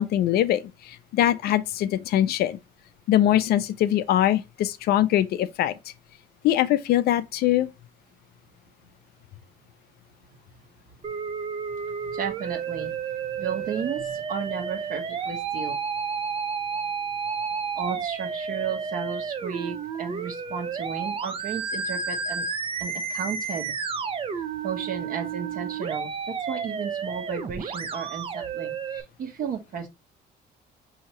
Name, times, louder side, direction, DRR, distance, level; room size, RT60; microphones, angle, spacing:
voice 1, 0.0-2.6 3.1-5.7 6.4-7.7, left 12 dB, 70° left, 0.5 m, -22 dB
Musical instrument, 11.0-29.0, right 6 dB, 35° right, 0.6 m, -31 dB
voice 2, 12.1-13.0 13.3-15.8 17.7-22.4 22.8-23.7 24.6-29.9, right 6 dB, 55° right, 1.2 m, -33 dB
5.5 x 2.8 x 2.9 m
cardioid pair, 110°, 17 cm